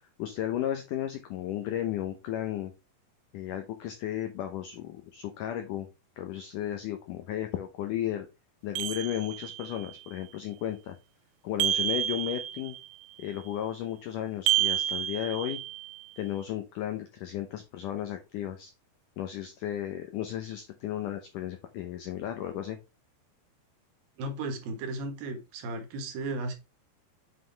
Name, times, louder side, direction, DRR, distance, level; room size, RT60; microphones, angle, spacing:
voice 1, 0.2-2.7 3.3-5.9 6.2-8.3 8.6-10.9 11.4-12.8 13.2-15.6 16.2-18.7 19.2-22.8, left 11 dB, 85° left, 6 dB, 1.8 m, -34 dB
sound 1, 8.8-9.8 11.6-12.9 14.5-16.0, right 12 dB, 80° right, 2.7 m, -29 dB
voice 2, 24.2-26.5, right 2 dB, 65° right, 6 dB, 2.9 m, -35 dB
7.5 x 5.8 x 3.3 m, 0.27 s
omnidirectional pair, 4.9 m